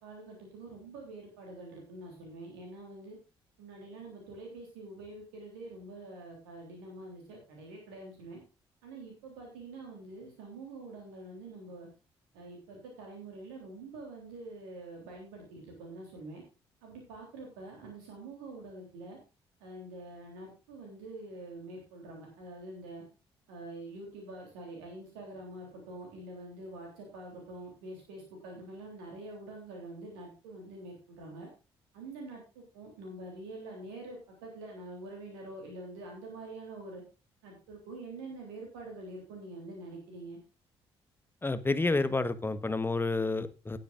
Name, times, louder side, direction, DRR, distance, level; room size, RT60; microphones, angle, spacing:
voice 1, 0.0-3.2 3.6-8.4 8.8-11.9 12.3-16.4 16.8-19.2 19.6-23.0 23.5-31.5 31.9-37.0 37.4-40.4, right 2 dB, 70° right, 3.4 m, -46 dB
voice 2, 41.4-43.8, left 3 dB, 15° left, 1.3 m, -29 dB
17.5 x 9.4 x 2.6 m
figure-of-eight pair, 40°, 13 cm